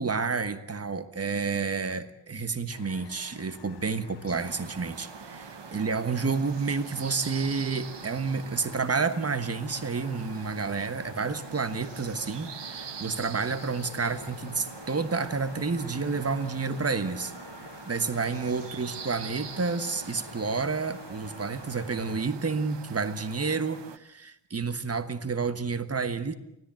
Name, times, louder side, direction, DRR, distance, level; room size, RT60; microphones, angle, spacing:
voice 1, 0.0-17.3 17.8-26.3, right 4 dB, 35° right, 11 dB, 1.4 m, -30 dB
sound 1, 2.7-22.2, left 6 dB, 70° left, 1.6 m, -48 dB
sound 2, 4.3-24.0, right 8 dB, 75° right, 1.1 m, -44 dB
24.0 x 17.0 x 8.9 m, 0.85 s
wide cardioid pair, 145°, 43 cm